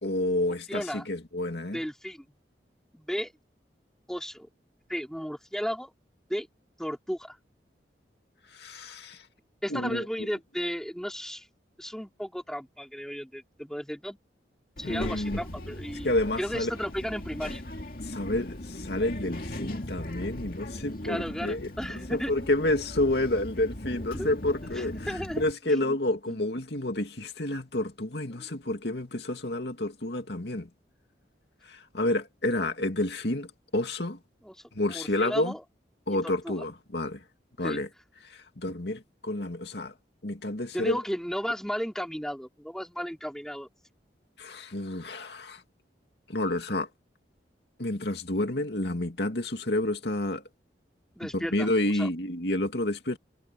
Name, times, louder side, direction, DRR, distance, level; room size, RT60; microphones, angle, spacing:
voice 1, 0.0-1.8 8.5-9.3 9.7-10.3 14.8-15.4 16.0-16.7 18.0-30.7 31.6-34.2 34.7-35.5 36.1-37.2 37.6-37.9 38.2-39.9 40.2-41.0 44.4-45.6 46.3-46.9 47.8-50.4 51.3-53.2, left 1 dB, 70° left, 2.4 m, -29 dB
voice 2, 0.7-1.1 1.7-2.2 2.9-3.3 4.1-4.5 4.9-5.9 6.3-6.5 6.8-7.4 9.6-11.5 11.8-14.2 14.8-16.1 16.4-17.6 21.0-22.3 24.1-24.3 24.8-26.0 26.3-26.4 28.3-28.5 34.4-34.6 34.9-35.6 36.1-36.2 36.4-36.5 37.6-37.8 40.7-43.7 51.2-51.7 51.9-52.1, equal, 5° left, 3.6 m, -34 dB
Child speech kid speaking, 14.8-25.5, left 1 dB, 50° left, 2.5 m, -38 dB
head